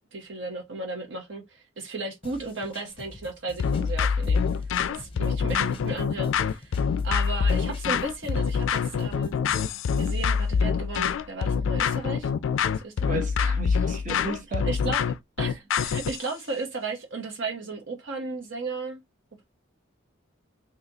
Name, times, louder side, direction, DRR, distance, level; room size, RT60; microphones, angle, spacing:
voice 1, 0.1-4.4 4.9-6.8 7.0-9.3 10.0-12.3 12.7-13.2 14.6-15.0 15.4-19.0, right 3 dB, 65° right, 0.9 m, -35 dB
sound 1, 2.2-10.2, left 2 dB, 25° left, 0.6 m, -47 dB
sound 2, 3.6-16.2, left 6 dB, 70° left, 0.3 m, -25 dB
voice 2, 13.1-14.7, right 2 dB, 40° right, 1.0 m, -34 dB
4.0 x 2.8 x 2.7 m
head